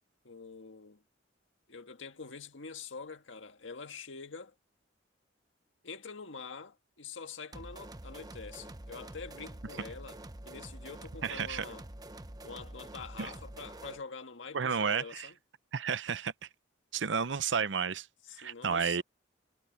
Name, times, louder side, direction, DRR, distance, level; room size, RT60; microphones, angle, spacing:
voice 1, 0.2-1.0 1.7-4.5 5.8-11.9 12.4-15.4 18.2-19.0, left 5 dB, 90° left, 1.8 m, -45 dB
sound 1, 7.5-14.0, right 1 dB, 20° right, 1.0 m, -47 dB
voice 2, 11.2-11.6 13.2-13.3 14.5-15.3 15.7-16.3 16.9-18.1 18.4-19.0, right 6 dB, 75° right, 0.7 m, -31 dB
head